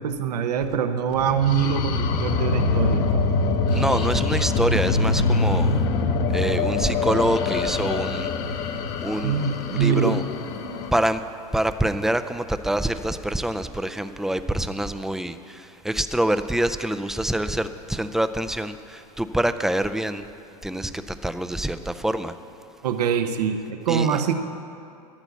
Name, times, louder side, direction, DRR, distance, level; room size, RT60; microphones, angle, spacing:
voice 1, 0.0-3.0 9.2-10.2 10.6-10.9 22.8-24.3, right 7 dB, 80° right, 8 dB, 1.0 m, -24 dB
Whispering Desert Storm Horror, 1.2-10.9, left 3 dB, 50° left, 1.0 m, -24 dB
voice 2, 3.7-5.8 6.3-8.3 9.0-10.2 10.9-11.2 11.5-20.3 20.6-22.3 23.9-24.2, right 1 dB, ahead, 10 dB, 0.4 m, -26 dB
13.5 x 6.9 x 8.2 m, 2.6 s
hypercardioid pair, 115°, 20 cm